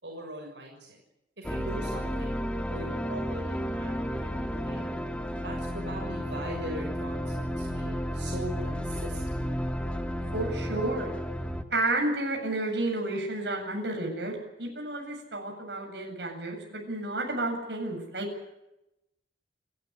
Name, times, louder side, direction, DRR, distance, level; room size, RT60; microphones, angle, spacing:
voice 1, 0.0-1.0 1.4-4.9 5.4-9.4, right 1 dB, 85° right, 0 dB, 6.7 m, -41 dB
sound 1, 1.4-11.6, equal, 5° left, 1.7 m, -32 dB
voice 2, 10.3-11.1 11.7-18.3, right 2 dB, 70° right, 1 dB, 8.0 m, -31 dB
29.5 x 13.5 x 9.8 m, 0.90 s
head